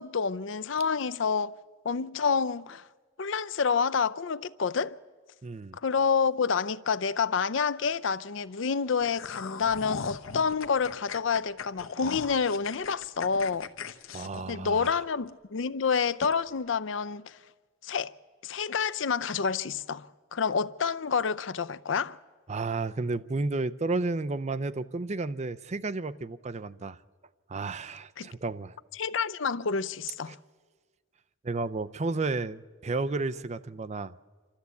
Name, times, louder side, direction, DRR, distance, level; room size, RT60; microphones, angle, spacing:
voice 1, 0.0-1.5 1.8-2.8 3.2-5.0 5.8-13.7 14.5-17.4 17.8-18.1 18.4-22.2 28.2-28.3 28.9-30.4, left 5 dB, 65° left, 0.5 m, -28 dB
voice 2, 5.4-5.8 14.1-15.0 22.5-27.0 27.5-28.8 30.3-30.4 31.4-34.1, right 3 dB, 35° right, 0.5 m, -32 dB
sound 1, 9.0-15.3 15.7-15.8 16.2-16.4, left 5 dB, 85° left, 1.0 m, -39 dB
27.0 x 13.0 x 8.3 m
head